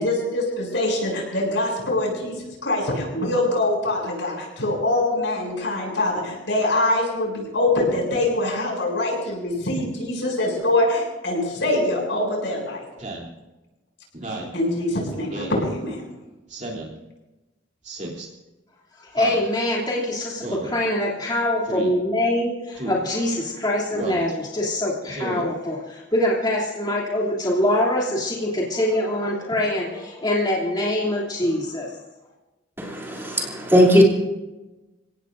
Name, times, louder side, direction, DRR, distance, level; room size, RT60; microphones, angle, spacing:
voice 1, 0.0-12.8 14.2-16.0, left 1 dB, 80° left, -1 dB, 7.6 m, -24 dB
Speech synthesizer, 13.0-13.3 14.1-14.5 15.3-15.6 16.5-16.9 17.8-18.3 19.1-19.5 20.4-20.7 21.6-21.9 22.8-23.0 23.9-24.3 25.1-25.5, right 2 dB, 45° right, 3.4 m, -32 dB
voice 2, 19.1-31.9, left 1 dB, 25° left, -4 dB, 3.1 m, -24 dB
voice 3, 32.8-34.0, equal, 15° right, -2 dB, 3.2 m, -18 dB
30.0 x 17.5 x 2.7 m, 1.1 s
head